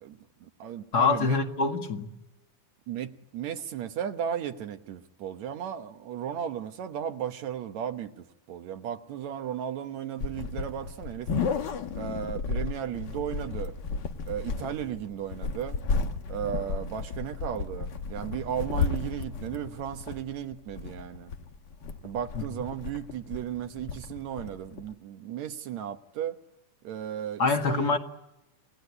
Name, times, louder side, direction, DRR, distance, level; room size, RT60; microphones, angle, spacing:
voice 1, 0.0-1.4 2.9-11.3 11.9-13.8 14.3-15.8 16.3-21.3 22.0-26.4 26.8-28.0, right 9 dB, 70° right, 2.2 m, -35 dB
voice 2, 0.9-2.1 22.4-22.5 27.4-28.0, left 4 dB, 35° left, 2.0 m, -25 dB
sound 1, 10.2-24.9, left 4 dB, 55° left, 1.2 m, -33 dB
28.5 x 18.0 x 9.7 m
omnidirectional pair, 3.6 m